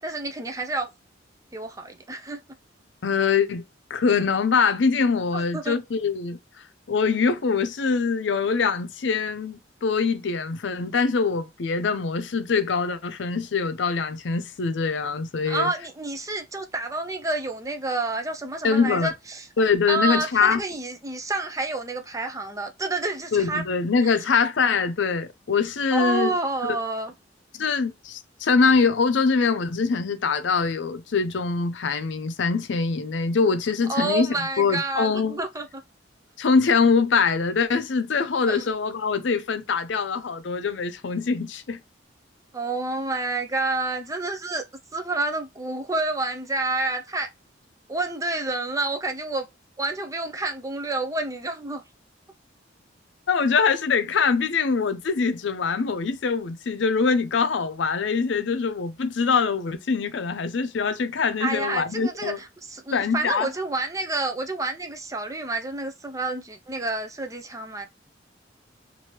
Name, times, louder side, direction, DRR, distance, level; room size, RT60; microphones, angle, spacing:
voice 1, 0.0-0.9 1.5-2.4 5.3-5.8 15.5-19.5 19.9-23.6 24.0-24.2 25.9-27.1 33.9-35.8 38.5-38.6 42.5-44.6 44.9-47.3 47.9-49.5 49.8-51.8 61.4-67.9, right 2 dB, 15° right, 0.5 m, -29 dB
voice 2, 3.0-3.6 3.9-6.4 6.9-15.7 18.6-19.1 19.6-20.6 23.3-26.3 26.6-26.8 27.5-35.4 36.4-41.8 53.3-62.4 62.9-63.5, left 5 dB, 70° left, 0.5 m, -23 dB
2.9 x 2.6 x 2.9 m
head